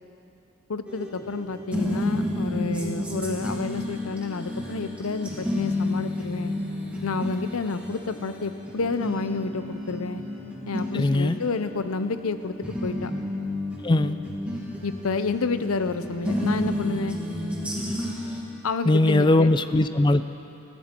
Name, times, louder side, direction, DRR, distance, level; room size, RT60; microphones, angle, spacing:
voice 1, 0.7-6.5 7.0-10.2 10.7-12.5 12.8-13.1 14.8-17.2 18.6-19.5, left 4 dB, 80° left, 11 dB, 0.7 m, -30 dB
sound 1, 0.9-18.4, left 1 dB, 5° right, 2.0 m, -31 dB
voice 2, 10.9-11.4 13.8-14.2 18.9-20.2, left 2 dB, 20° left, 11 dB, 0.4 m, -20 dB
21.5 x 15.0 x 4.5 m, 2.9 s
head